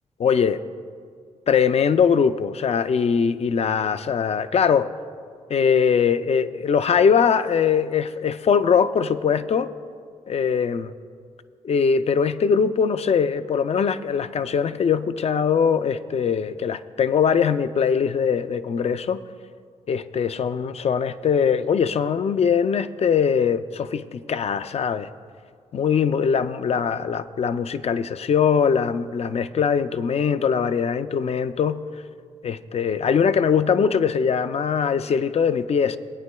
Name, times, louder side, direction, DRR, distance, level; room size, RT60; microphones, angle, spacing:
voice 1, 0.2-0.6 1.5-4.9 5.5-9.7 10.3-10.9 11.6-19.2 19.9-25.1 25.7-31.8 32.4-36.0, left 6 dB, 50° left, 12 dB, 0.4 m, -21 dB
20.0 x 9.0 x 2.3 m, 2.1 s
supercardioid pair, 50°, 14 cm